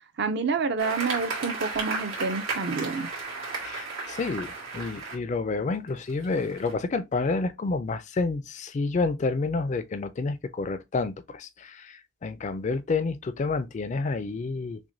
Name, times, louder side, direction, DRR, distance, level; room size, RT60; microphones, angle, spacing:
voice 1, 0.2-3.1, right 4 dB, 55° right, 0.6 m, -28 dB
sound 1, 0.8-5.1 5.9-6.7, right 4 dB, 90° right, 1.8 m, -34 dB
voice 2, 3.6-14.8, left 3 dB, 35° left, 0.4 m, -29 dB
6.0 x 2.2 x 2.6 m
head